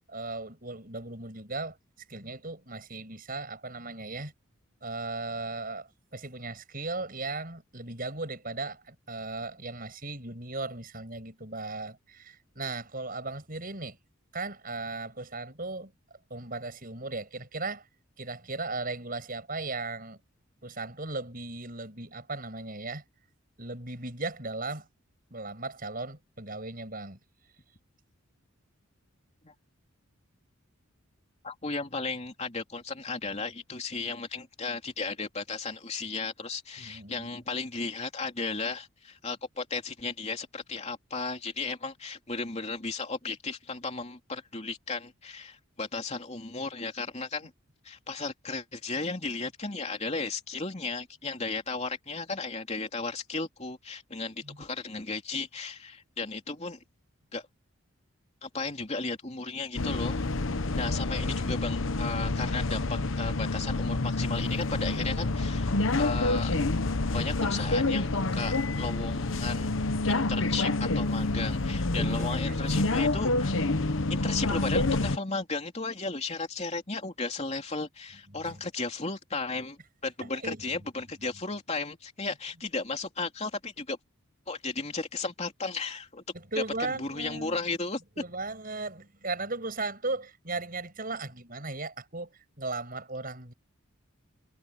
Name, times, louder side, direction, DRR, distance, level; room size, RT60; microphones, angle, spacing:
voice 1, 0.1-1.8 2.1-4.3 4.8-14.0 14.3-15.9 16.3-17.9 18.2-20.2 20.6-23.0 23.6-24.9 25.3-27.2 36.8-37.3 54.4-54.6 71.9-72.8 78.3-78.6 80.2-80.6 86.3-87.6 88.2-93.5, right 3 dB, 40° right, 7.2 m, -37 dB
voice 2, 31.4-47.5 47.8-56.8 57.3-57.4 58.4-60.2 60.8-66.5 67.1-69.7 70.1-73.7 74.1-84.0 84.5-86.2 86.8-88.0, left 3 dB, 30° left, 3.2 m, -35 dB
sound 1, 59.8-75.2, left 2 dB, 65° left, 1.0 m, -28 dB
head